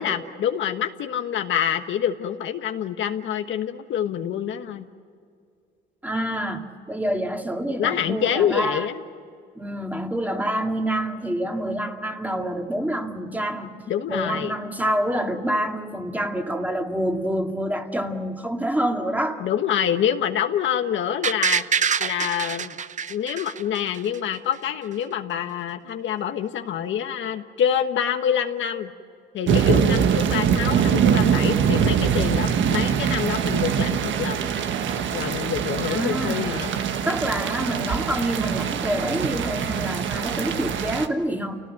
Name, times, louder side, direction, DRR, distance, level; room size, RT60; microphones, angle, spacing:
voice 1, 0.0-4.9 7.8-9.0 13.9-14.5 19.4-21.6 22.0-22.8 23.1-28.9 29.3-34.4 35.1-36.7, left 9 dB, 75° left, 6 dB, 1.3 m, -26 dB
voice 2, 6.0-8.9 9.6-19.4 35.8-36.6 37.0-41.6, right 1 dB, 10° right, 3 dB, 2.2 m, -27 dB
sound 1, 21.2-24.2 24.5-24.6, right 7 dB, 40° right, 0.7 m, -25 dB
sound 2, 29.5-41.1, right 8 dB, 75° right, 1.4 m, -23 dB
29.0 x 18.5 x 7.7 m, 2.3 s
cardioid pair, 90°, 20 cm